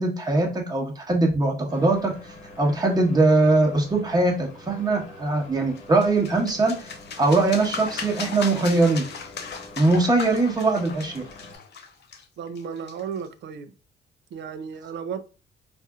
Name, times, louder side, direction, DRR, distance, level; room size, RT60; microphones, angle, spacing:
voice 1, 0.0-2.1 2.6-6.8 7.2-9.0 9.8-11.2, right 2 dB, 20° right, 1.1 m, -21 dB
sound 1, 1.7-11.6, left 2 dB, 85° left, 0.9 m, -45 dB
sound 2, 5.8-13.3, left 5 dB, 60° left, 0.7 m, -38 dB
voice 2, 12.4-13.7 14.3-15.2, right 6 dB, 60° right, 0.5 m, -34 dB
4.1 x 2.6 x 2.3 m
cardioid pair, 90°, 20 cm